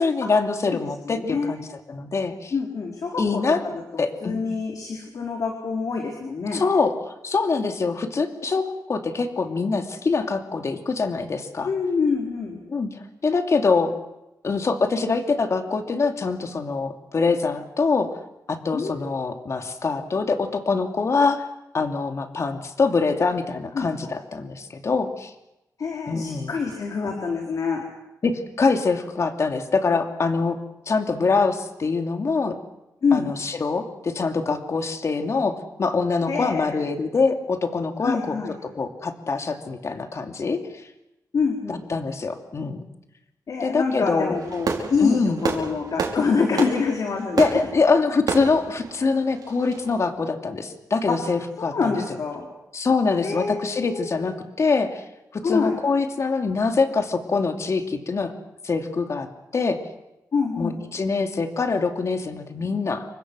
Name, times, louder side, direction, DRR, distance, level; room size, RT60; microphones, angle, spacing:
voice 1, 0.0-1.6 1.9-2.5 3.2-3.6 4.0-4.4 6.5-6.9 7.2-11.7 12.7-13.9 14.4-18.1 18.5-21.4 21.7-25.3 26.1-26.5 28.2-30.6 30.9-32.6 33.1-40.9 41.7-42.8 43.6-44.4 45.0-45.4 47.4-51.9 52.7-55.0 55.3-58.3 58.6-59.8 60.6-63.1, left 4 dB, 50° left, 5 dB, 2.7 m, -24 dB
voice 2, 0.7-1.6 2.5-3.4 3.7-3.8 4.2-6.6 11.6-12.6 18.7-19.0 23.7-24.1 25.8-27.8 33.0-33.3 36.3-36.9 38.0-38.5 41.3-41.8 43.5-47.5 51.1-51.2 51.7-52.5 53.2-54.2 55.4-55.7 60.3-60.8, left 5 dB, 65° left, 1 dB, 4.3 m, -26 dB
Fireworks, 44.3-49.9, right 5 dB, 85° right, 5.1 m, -31 dB
29.5 x 24.5 x 6.4 m, 0.91 s
wide cardioid pair, 120°, 6 cm